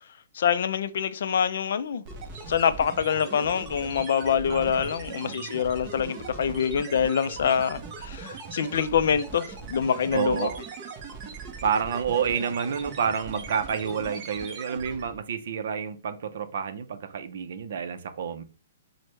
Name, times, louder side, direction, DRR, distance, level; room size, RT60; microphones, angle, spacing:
voice 1, 0.3-2.0 2.5-10.5, left 7 dB, 60° left, 0.3 m, -25 dB
sound 1, 2.0-15.2, right 4 dB, 25° right, 0.7 m, -40 dB
voice 2, 4.5-5.5 10.1-10.6 11.6-18.4, right 7 dB, 60° right, 0.5 m, -29 dB
6.0 x 2.1 x 3.1 m
hypercardioid pair, 165°, 0 cm